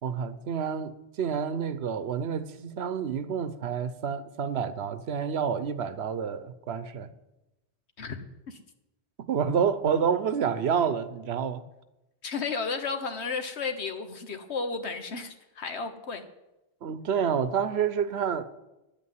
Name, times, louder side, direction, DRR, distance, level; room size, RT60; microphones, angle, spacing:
voice 1, 0.0-7.1 9.2-11.6 16.8-18.5, right 7 dB, 70° right, 1.0 m, -28 dB
voice 2, 8.0-8.6 12.2-16.2, left 4 dB, 75° left, 1.5 m, -33 dB
10.0 x 8.5 x 9.5 m
omnidirectional pair, 1.1 m